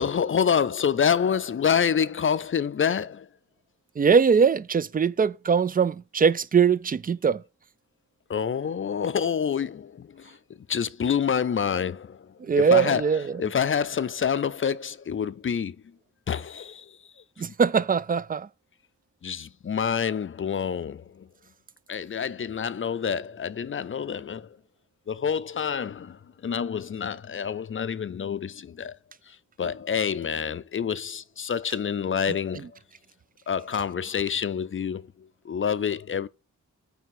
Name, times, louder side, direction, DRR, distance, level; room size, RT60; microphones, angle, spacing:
voice 1, 0.0-3.3 8.3-10.4 10.7-15.8 16.3-17.0 19.2-21.3 21.9-24.6 25.1-28.9 29.3-32.8 33.5-36.3, left 7 dB, 40° left, 0.5 m, -27 dB
voice 2, 4.0-7.4 12.5-13.3 17.4-18.5, right 6 dB, 30° right, 0.4 m, -21 dB
9.1 x 3.4 x 5.9 m
wide cardioid pair, 95°, 31 cm